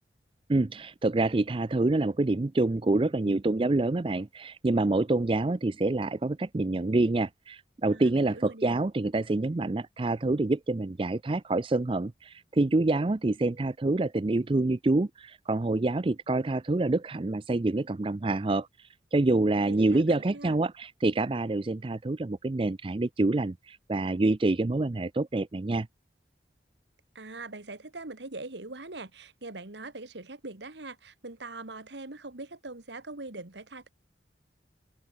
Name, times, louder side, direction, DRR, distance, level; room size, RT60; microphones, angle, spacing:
voice 1, 0.5-25.9, right 2 dB, 30° right, 0.4 m, -27 dB
voice 2, 7.9-8.8 19.7-20.6 27.2-33.9, right 2 dB, 70° right, 1.9 m, -42 dB
open air
head